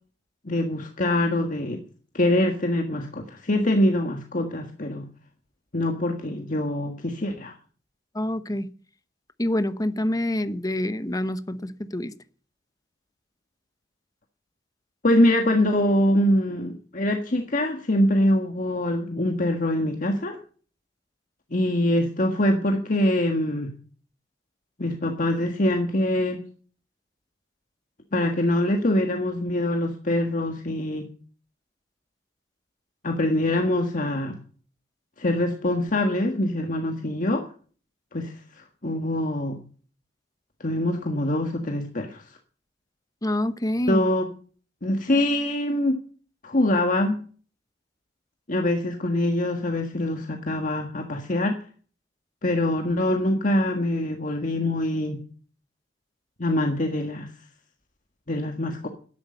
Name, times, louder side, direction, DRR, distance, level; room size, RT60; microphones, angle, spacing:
voice 1, 0.4-1.8 2.1-5.1 5.7-7.5 15.0-20.4 21.5-23.7 24.8-26.4 28.1-31.1 33.0-34.4 35.2-37.5 38.1-39.6 40.6-42.2 43.9-44.3 44.8-46.0 46.4-47.2 48.5-51.6 52.4-55.2 56.4-57.3 58.3-58.9, left 1 dB, 45° left, 4 dB, 1.7 m, -24 dB
voice 2, 8.1-8.7 9.4-12.1 43.2-44.0, left 1 dB, 20° left, 13 dB, 0.9 m, -26 dB
12.5 x 11.0 x 5.3 m, 0.42 s
head